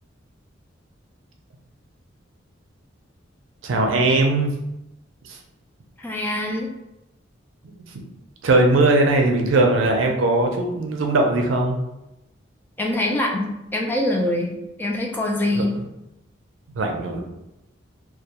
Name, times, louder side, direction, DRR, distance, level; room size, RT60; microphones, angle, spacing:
voice 1, 3.6-4.5 5.2-5.4 7.6-7.8 8.4-11.8 15.5-15.6 16.7-17.2, right 2 dB, 80° right, 2 dB, 0.4 m, -19 dB
voice 2, 6.0-6.7 12.8-15.7, left 1 dB, 10° left, 0 dB, 0.3 m, -24 dB
2.3 x 2.2 x 2.8 m, 0.90 s
head